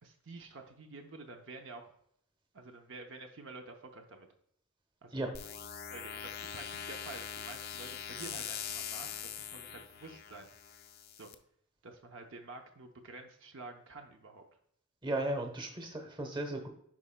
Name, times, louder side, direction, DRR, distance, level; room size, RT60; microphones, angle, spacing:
voice 1, 0.0-2.0 2.5-4.3 5.0-5.2 5.9-10.5 11.1-11.3 11.8-14.4, right 3 dB, 60° right, 4 dB, 0.7 m, -49 dB
sound 1, 5.3-11.3, left 9 dB, 45° left, 0.5 m, -42 dB
voice 2, 15.0-16.7, right 1 dB, 20° right, 4 dB, 0.9 m, -35 dB
10.5 x 4.2 x 2.2 m, 0.70 s
head